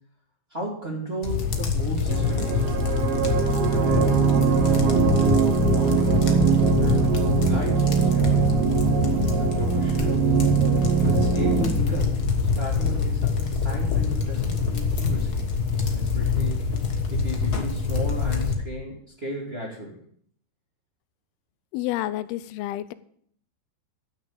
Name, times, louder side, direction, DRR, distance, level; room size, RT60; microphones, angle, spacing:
voice 1, 0.5-2.7 3.6-5.1 5.7-6.5 6.8-8.5 9.3-10.3 11.1-12.2 12.6-15.5 15.9-16.7 17.1-20.0, right 1 dB, 20° right, -2 dB, 2.1 m, -35 dB
sound 1, 1.2-18.5, left 5 dB, 70° left, 0.9 m, -25 dB
sound 2, 2.1-11.7, right 9 dB, 80° right, 3.5 m, -22 dB
voice 2, 21.7-22.9, left 15 dB, 90° left, 16 dB, 2.6 m, -29 dB
13.0 x 6.4 x 7.7 m, 0.63 s
omnidirectional pair, 4.4 m